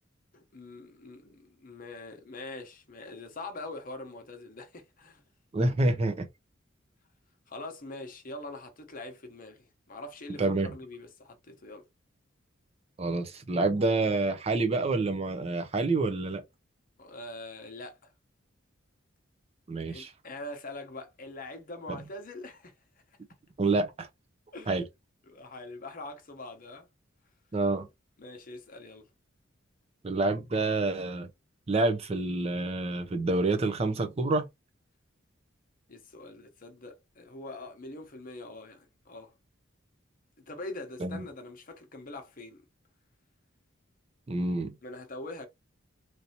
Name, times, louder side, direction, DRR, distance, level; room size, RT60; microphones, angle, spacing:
voice 1, 0.3-5.2 7.5-11.9 17.0-18.1 19.9-22.7 24.5-24.8 25.3-26.9 28.2-29.1 35.9-39.3 40.5-42.6 44.8-45.5, left 2 dB, 45° left, 0.9 m, -43 dB
voice 2, 5.5-6.3 10.4-10.7 13.0-16.4 19.7-20.1 23.6-24.1 24.7-24.8 27.5-27.9 30.0-31.3 31.7-34.5 41.0-41.2 44.3-44.7, right 2 dB, 30° right, 0.5 m, -27 dB
3.2 x 2.7 x 2.8 m
head